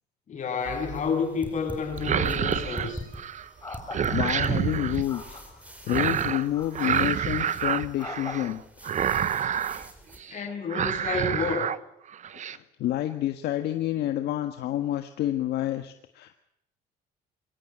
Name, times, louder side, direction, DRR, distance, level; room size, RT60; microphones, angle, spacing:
voice 1, 0.3-3.0 10.3-11.7, left 5 dB, 45° left, 3 dB, 7.9 m, -30 dB
sound 1, 0.6-10.2, equal, 10° right, 4.6 m, -44 dB
sound 2, 0.7-1.1 1.9-3.5 3.7-5.0 5.9-6.5 6.7-8.5 8.8-9.9 10.2-10.4 10.7-11.8 12.1-12.6, right 9 dB, 45° right, 1.0 m, -28 dB
sound 3, 2.7-2.9 3.6-4.6 5.1-5.7 6.5-7.1 8.0-8.5, left 3 dB, 20° left, 5.7 m, -41 dB
voice 2, 4.1-5.4 5.9-8.9 12.3-16.4, left 13 dB, 75° left, 8 dB, 1.6 m, -29 dB
23.5 x 17.5 x 9.1 m, 0.77 s
cardioid pair, 110°, 17 cm